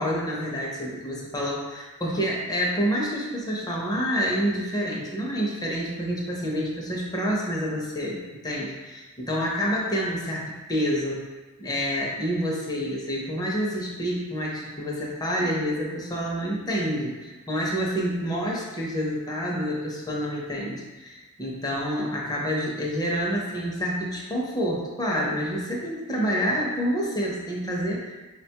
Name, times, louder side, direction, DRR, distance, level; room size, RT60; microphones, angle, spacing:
voice 1, 0.0-11.2 11.6-28.1, equal, 15° left, -3 dB, 0.6 m, -28 dB
4.8 x 2.2 x 2.8 m, 1.3 s
head